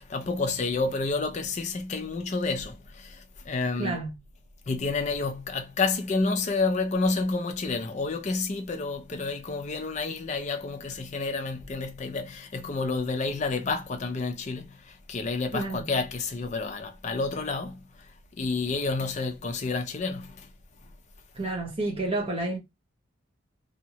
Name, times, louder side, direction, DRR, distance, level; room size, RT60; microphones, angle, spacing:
voice 1, 0.0-4.0 4.7-18.0 18.4-20.5, left 3 dB, 35° left, 0.4 m, -29 dB
voice 2, 3.8-4.1 15.5-15.9 21.3-22.6, right 2 dB, 25° right, 0.8 m, -30 dB
2.7 x 2.1 x 2.8 m
head